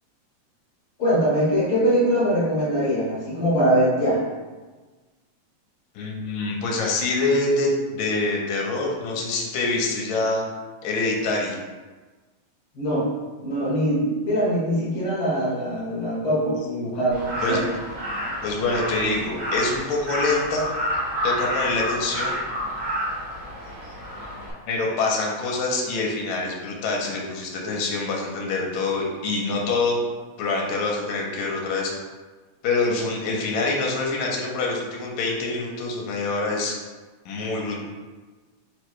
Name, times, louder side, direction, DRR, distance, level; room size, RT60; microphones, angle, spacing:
voice 1, 1.0-4.2 12.7-13.1 13.4-16.6 17.0-17.7, equal, 60° left, -6 dB, 1.7 m, -22 dB
voice 2, 6.0-10.4 10.8-11.6 16.6-17.0 17.4-17.7 18.4-20.7 21.2-22.4 24.7-30.0 30.4-31.9 32.6-36.8 37.3-37.8, left 3 dB, 85° left, -1 dB, 2.0 m, -25 dB
Crow, 17.1-24.5, equal, 75° right, 0.7 m, -29 dB
4.6 x 2.1 x 4.5 m, 1.3 s
omnidirectional pair, 3.3 m